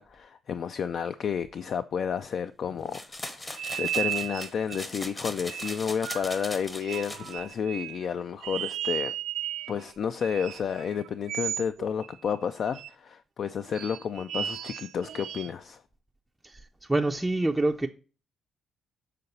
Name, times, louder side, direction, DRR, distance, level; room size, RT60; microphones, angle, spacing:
voice 1, 0.0-9.1 9.7-15.8, left 7 dB, 55° left, 0.3 m, -31 dB
sound 1, 2.9-7.3, left 1 dB, 20° left, 0.8 m, -39 dB
sound 2, 3.6-4.8 5.5-6.4 6.8-8.1 8.4-9.9 10.2-12.4 12.7-12.9 13.7-15.5, right 11 dB, 80° right, 0.4 m, -35 dB
voice 2, 16.4-17.9, right 2 dB, 10° right, 0.4 m, -27 dB
6.7 x 3.9 x 4.1 m
cardioid pair, 90°, 0 cm